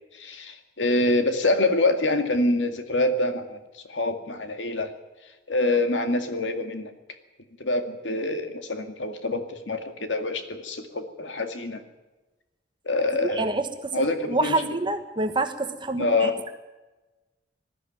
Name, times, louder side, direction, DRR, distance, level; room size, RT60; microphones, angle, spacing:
voice 1, 0.1-4.9 5.5-6.9 7.6-11.8 12.8-13.5 13.9-14.5 16.0-16.4, left 2 dB, 85° left, 7 dB, 2.0 m, -25 dB
voice 2, 13.1-16.5, right 2 dB, 25° right, 7 dB, 1.3 m, -27 dB
20.0 x 14.0 x 9.3 m, 1.1 s
head